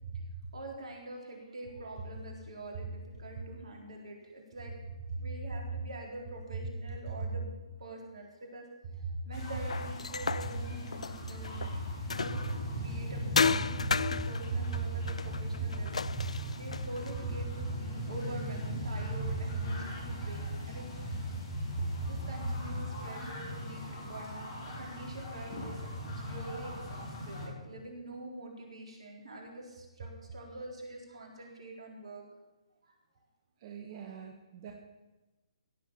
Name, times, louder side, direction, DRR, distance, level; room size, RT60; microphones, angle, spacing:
voice 1, 0.5-4.7 5.2-7.5 7.8-8.7 9.0-11.6 12.1-12.5 12.8-15.9 16.6-20.9 22.0-32.3 33.9-34.1, right 2 dB, 65° right, 0 dB, 4.2 m, -45 dB
sound 1, 9.3-27.5, equal, 40° left, 4.7 m, -40 dB
sound 2, 9.7-12.7 13.4-17.2, left 5 dB, 75° left, 0.3 m, -34 dB
voice 2, 14.2-14.6 15.6-15.7 16.2-16.6 19.5-19.6 20.1-20.3 21.6-22.2 33.6-34.7, right 4 dB, 40° right, 2 dB, 1.6 m, -37 dB
16.5 x 7.3 x 7.2 m, 1.1 s
figure-of-eight pair, 135°, 3 cm